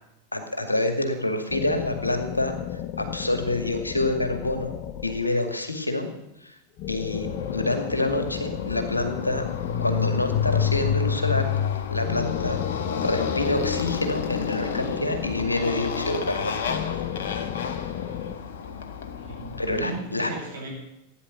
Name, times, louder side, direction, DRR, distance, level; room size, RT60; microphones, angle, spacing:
voice 1, 0.3-2.6 3.0-6.1 6.4-6.6 6.9-9.4 9.8-11.5 11.9-12.6 13.0-16.6 19.6-20.3, left 2 dB, 85° left, 7 dB, 2.2 m, -27 dB
sound 1, 1.5-5.7 6.8-11.4 12.0-16.1 16.7-18.3, left 11 dB, 40° left, 0.9 m, -34 dB
Motorcycle, 7.2-19.9, left 7 dB, 60° left, 1.5 m, -29 dB
voice 2, 19.1-20.7, right 3 dB, 70° right, -2 dB, 7.6 m, -37 dB
15.5 x 9.9 x 8.3 m, 0.88 s
figure-of-eight pair, 90°, 0 cm